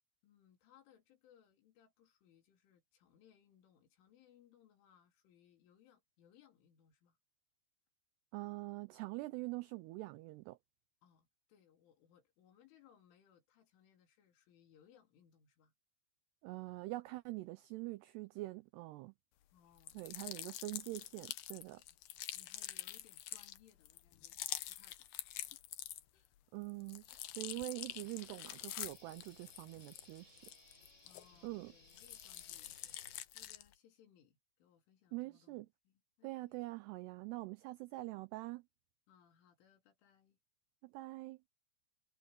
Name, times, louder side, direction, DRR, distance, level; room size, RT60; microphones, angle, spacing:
voice 1, 0.2-7.2 11.0-15.7 19.5-20.4 22.1-25.1 25.5-25.6 26.1-26.4 26.7-26.9 31.0-36.6 39.1-40.4, left 9 dB, 90° left, 5.7 m, -68 dB
voice 2, 8.3-10.6 16.4-19.1 19.9-21.8 26.5-30.5 31.4-31.7 35.1-35.7 36.2-38.6 40.8-41.4, right 20 dB, 85° right, 2.3 m, -44 dB
sound 1, 19.8-26.3 26.6-31.5 31.9-33.7, left 14 dB, 70° left, 2.4 m, -46 dB
sound 2, 27.8-33.2, left 2 dB, 15° left, 5.7 m, -64 dB
omnidirectional pair, 5.4 m